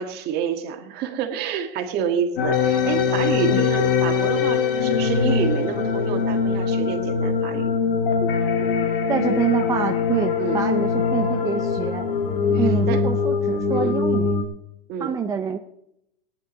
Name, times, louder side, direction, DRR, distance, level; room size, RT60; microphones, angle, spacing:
voice 1, 0.0-7.7 10.4-10.6 12.5-13.0 13.7-14.0 14.9-15.1, right 8 dB, 35° right, 5 dB, 1.8 m, -28 dB
sound 1, 2.4-14.4, left 5 dB, 70° left, 2.3 m, -22 dB
voice 2, 9.1-12.1 12.6-14.3 15.0-15.6, right 7 dB, 10° right, 4 dB, 0.4 m, -26 dB
19.0 x 10.5 x 4.0 m, 0.79 s
supercardioid pair, 160°, 29 cm